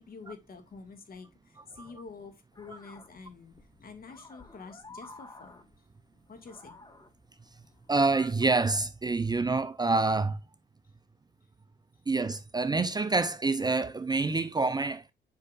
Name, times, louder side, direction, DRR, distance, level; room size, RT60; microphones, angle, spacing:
voice 1, 0.0-5.6 6.3-6.8, left 4 dB, 50° left, 2.1 m, -48 dB
sound 1, 2.5-8.5, left 2 dB, 20° left, 1.4 m, -53 dB
voice 2, 7.9-10.4 12.1-15.0, right 3 dB, 20° right, 0.5 m, -27 dB
8.2 x 5.6 x 2.5 m
cardioid pair, 90°, 20 cm